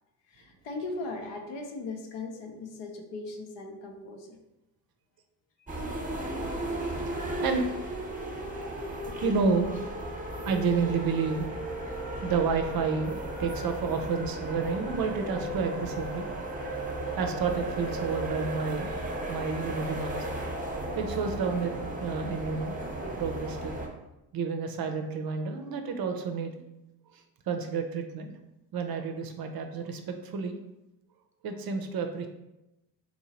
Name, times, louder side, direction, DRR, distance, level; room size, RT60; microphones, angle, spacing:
voice 1, 0.3-4.4 8.6-9.2, left 3 dB, 60° left, 3 dB, 0.8 m, -39 dB
sound 1, 5.7-23.9, right 1 dB, 15° right, 1.1 m, -35 dB
voice 2, 7.1-7.8 9.2-10.1 10.4-11.5 12.2-16.3 17.2-20.3 21.0-21.7 22.0-22.8 23.1-23.7 24.3-26.6 27.1-28.4 28.7-30.5 31.4-32.3, right 5 dB, 45° right, 5 dB, 0.6 m, -30 dB
4.1 x 2.7 x 2.9 m, 0.94 s
hypercardioid pair, 45°, 50 cm